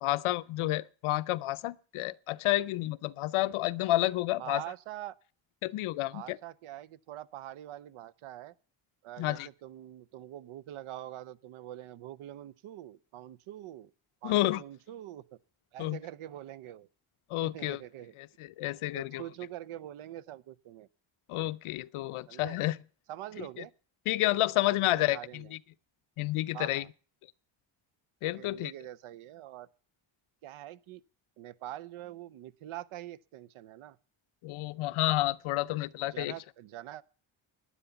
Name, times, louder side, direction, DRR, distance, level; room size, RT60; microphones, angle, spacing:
voice 1, 0.0-4.6 5.6-6.4 9.2-9.5 14.2-14.6 15.8-16.0 17.3-17.8 18.6-19.2 21.3-22.8 24.1-25.4 26.2-26.8 28.2-28.7 34.4-36.3, left 17 dB, 80° left, 0.7 m, -30 dB
voice 2, 4.4-5.1 6.1-8.5 9.0-13.9 14.2-15.2 15.7-16.9 17.4-18.1 18.9-20.9 22.3-22.6 23.1-23.7 24.6-25.5 26.5-26.9 28.3-29.7 30.4-31.0 31.4-34.0 36.1-37.0, right 13 dB, 80° right, 0.8 m, -44 dB
11.5 x 10.0 x 6.9 m
cardioid pair, 135°, 49 cm